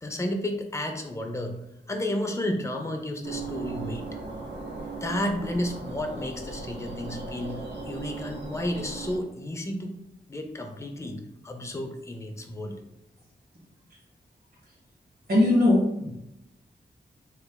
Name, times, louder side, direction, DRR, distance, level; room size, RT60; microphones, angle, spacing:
voice 1, 0.0-1.6 1.9-4.1 5.0-10.0 10.3-12.8, left 1 dB, 15° left, 4 dB, 0.4 m, -32 dB
sound 1, 3.2-9.2, right 3 dB, 85° right, 0.8 m, -37 dB
voice 2, 15.3-16.1, left 1 dB, 60° right, -6 dB, 1.5 m, -20 dB
3.3 x 3.0 x 2.2 m, 0.85 s
wide cardioid pair, 105°, 17 cm